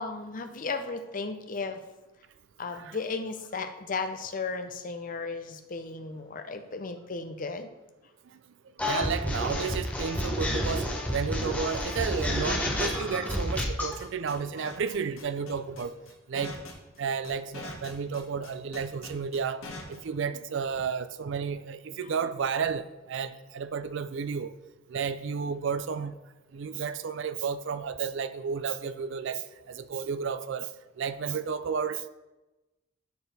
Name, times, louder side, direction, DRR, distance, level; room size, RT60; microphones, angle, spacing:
voice 1, 0.0-1.8 2.6-7.7, left 4 dB, 40° left, 0.6 m, -35 dB
sound 1, 8.8-13.9, left 1 dB, 5° left, 1.1 m, -30 dB
voice 2, 8.8-16.0 16.3-16.5 17.0-19.6 19.9-24.5 24.9-26.2 26.5-32.0, right 6 dB, 60° right, 0.4 m, -32 dB
sound 2, 14.0-20.0, left 3 dB, 80° left, 1.5 m, -43 dB
12.5 x 4.7 x 3.4 m
head